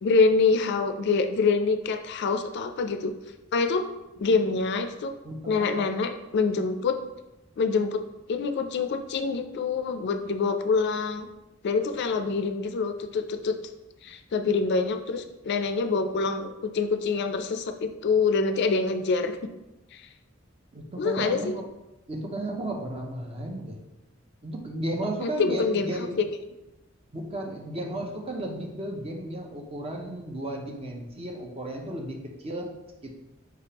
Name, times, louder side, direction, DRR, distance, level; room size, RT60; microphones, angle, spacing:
voice 1, 0.0-3.1 3.5-3.8 4.2-5.1 5.5-7.0 7.6-8.0 8.3-11.3 11.6-13.5 14.0-19.4 19.9-20.0 21.0-21.5 25.2-26.2, left 4 dB, 55° left, 7 dB, 0.3 m, -25 dB
voice 2, 5.2-5.8 20.7-21.6 22.1-23.8 24.4-26.2 27.1-32.7 33.0-33.1, right 1 dB, 30° right, 1 dB, 0.6 m, -34 dB
4.9 x 3.5 x 2.8 m, 0.98 s
head